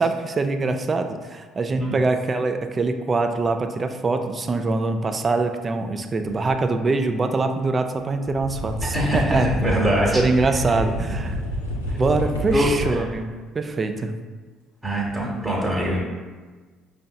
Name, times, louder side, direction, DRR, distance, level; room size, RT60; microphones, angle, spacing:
voice 1, 0.0-11.4 12.0-14.1, right 3 dB, 30° right, 6 dB, 0.3 m, -24 dB
sound 1, 6.2-6.5 7.9-8.0 8.2-13.2 15.0-15.1, equal, 85° left, 0.5 m, -28 dB
voice 2, 8.8-10.2 10.7-10.8 12.5-12.7 14.8-16.0, right 1 dB, 10° right, -6 dB, 0.9 m, -23 dB
5.4 x 2.6 x 2.2 m, 1.4 s
figure-of-eight pair, 50°, 0 cm